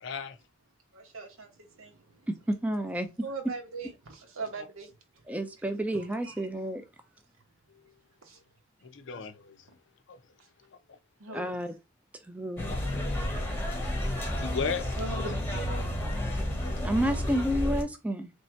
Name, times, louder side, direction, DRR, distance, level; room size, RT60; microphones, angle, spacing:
voice 1, 0.0-0.3 8.8-9.6 10.1-10.2 11.3-11.6 12.7-13.3 13.7-15.3 16.0-16.8, left 6 dB, 60° left, 0.5 m, -38 dB
voice 2, 0.9-2.2 3.2-4.9 5.3-5.4 5.9-6.4 8.2-8.4 11.2-11.5 15.0-15.5, right 3 dB, 85° right, 1.1 m, -40 dB
voice 3, 2.3-3.1 5.3-6.8 11.3-11.7 12.3-12.6 16.8-18.3, equal, 5° right, 0.4 m, -30 dB
sound 1, 12.6-17.8, left 1 dB, 10° left, 0.9 m, -31 dB
3.2 x 2.7 x 4.3 m
head